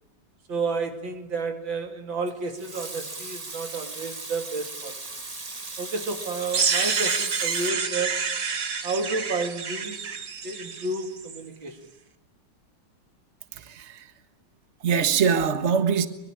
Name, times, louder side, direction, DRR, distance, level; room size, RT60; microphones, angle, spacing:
voice 1, 0.5-4.9 5.8-8.2 8.8-10.1 10.4-11.8, right 3 dB, 85° right, 3.2 m, -31 dB
Water tap faucet / Sink (filling or washing) / Liquid, 2.3-7.7, right 3 dB, 20° right, 1.6 m, -38 dB
sound 1, 6.5-11.4, right 5 dB, 55° right, 2.1 m, -28 dB
voice 2, 13.5-14.1 14.8-16.1, right 6 dB, 40° right, 1.7 m, -23 dB
24.5 x 22.5 x 9.8 m
omnidirectional pair, 2.0 m